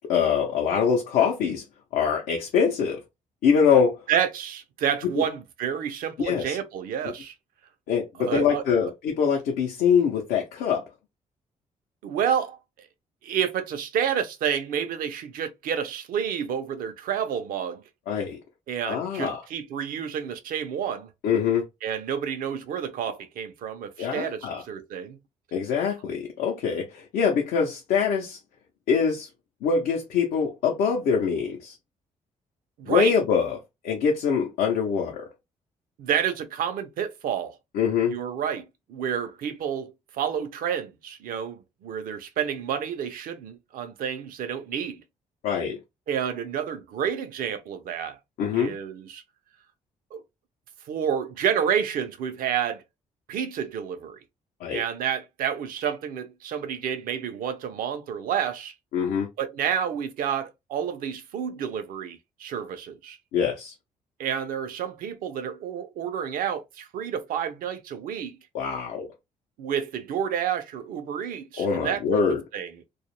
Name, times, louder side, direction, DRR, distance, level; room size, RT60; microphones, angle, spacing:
voice 1, 0.1-1.6 1.9-3.0 3.4-4.0 5.2-5.3 6.2-6.6 7.9-10.9 18.1-18.4 18.9-19.4 21.2-21.7 24.0-24.6 25.5-28.4 28.9-29.3 29.6-31.7 32.9-33.6 33.8-35.3 37.7-38.2 45.4-45.8 48.4-48.7 54.6-54.8 58.9-59.3 63.3-63.7 68.5-69.1 71.6-72.4, left 6 dB, 90° left, 0.6 m, -24 dB
voice 2, 4.1-7.3 8.2-8.9 12.0-12.6 13.2-17.8 18.7-21.1 21.8-25.2 32.8-33.2 36.0-37.6 38.1-45.0 46.1-48.2 48.5-49.2 50.1-50.2 50.9-52.8 53.3-54.2 54.7-58.7 59.4-63.2 64.2-68.4 69.6-72.2 72.5-72.7, right 8 dB, 80° right, 0.6 m, -29 dB
2.3 x 2.1 x 2.9 m
cardioid pair, 75°, 15 cm